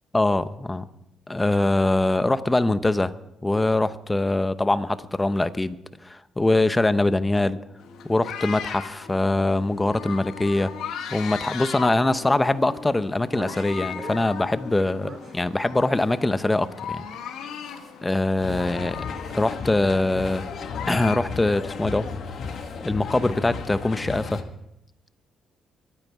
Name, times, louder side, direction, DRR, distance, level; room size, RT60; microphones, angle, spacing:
voice 1, 0.1-0.8 1.3-3.1 3.4-7.6 8.1-10.7 11.1-17.0 18.0-19.0 19.3-20.5 20.9-22.1 22.8-24.4, left 2 dB, 15° left, 13 dB, 0.8 m, -23 dB
sound 1, 7.8-21.2, left 8 dB, 85° left, 1.6 m, -37 dB
sound 2, 13.1-14.2 14.7-15.4 16.0-16.2 17.6-17.9 18.3-18.7 19.2-19.5 20.1-20.4 22.3-22.8, right 3 dB, 45° right, 3.7 m, -44 dB
sound 3, 18.4-24.4, left 5 dB, 65° left, 1.6 m, -34 dB
23.0 x 9.2 x 4.7 m, 0.81 s
cardioid pair, 85°, 0 cm